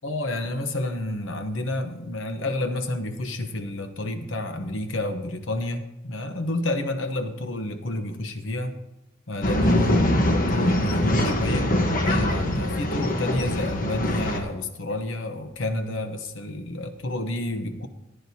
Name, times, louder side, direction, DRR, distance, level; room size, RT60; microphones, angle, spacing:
voice 1, 0.0-8.8 9.3-17.9, left 1 dB, 80° left, 7 dB, 1.0 m, -29 dB
Male speech man speaking / Chatter / Rattle, 9.4-14.4, left 1 dB, 45° left, 1.2 m, -23 dB
15.0 x 9.9 x 2.8 m, 0.95 s
head